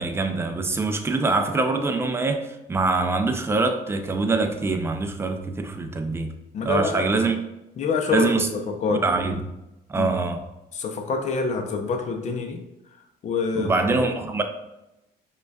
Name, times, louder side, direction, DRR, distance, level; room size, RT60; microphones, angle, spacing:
voice 1, 0.0-6.3 6.6-7.4 8.1-8.5 8.9-9.5 9.9-10.4 13.5-14.4, right 3 dB, 15° right, 5 dB, 0.4 m, -24 dB
voice 2, 6.5-7.0 7.8-9.0 10.0-10.1 10.7-12.6 13.2-13.7, left 5 dB, 45° left, 4 dB, 0.6 m, -26 dB
5.0 x 2.3 x 2.3 m, 0.92 s
cardioid pair, 110°, 17 cm